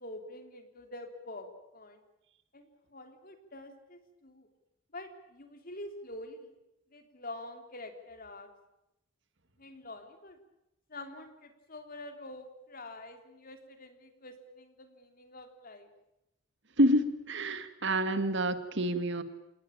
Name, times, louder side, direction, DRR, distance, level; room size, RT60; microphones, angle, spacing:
voice 1, 0.0-1.5 1.7-2.0 2.5-4.5 4.9-6.5 6.9-8.5 9.6-10.4 10.9-15.9, left 2 dB, 40° left, 6 dB, 3.3 m, -46 dB
voice 2, 16.8-19.2, equal, 55° right, 10 dB, 2.0 m, -28 dB
27.5 x 19.0 x 8.8 m, 0.91 s
head